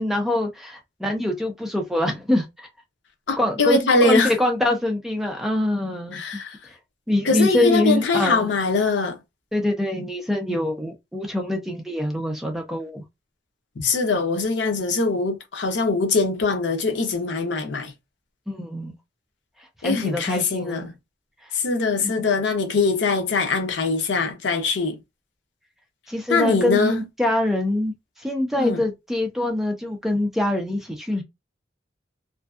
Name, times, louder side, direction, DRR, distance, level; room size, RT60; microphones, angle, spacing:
voice 1, 0.0-2.7 3.4-6.2 6.7-6.8 7.1-8.5 9.5-13.0 18.5-18.9 19.8-20.9 21.4-21.5 22.0-22.1 26.1-31.2, left 1 dB, ahead, 0.4 m, -24 dB
voice 2, 3.3-4.3 6.1-6.6 7.2-9.2 13.8-17.9 19.8-20.9 21.5-25.0 26.3-27.0 28.6-28.8, left 3 dB, 75° left, 0.6 m, -22 dB
2.5 x 2.3 x 2.3 m
head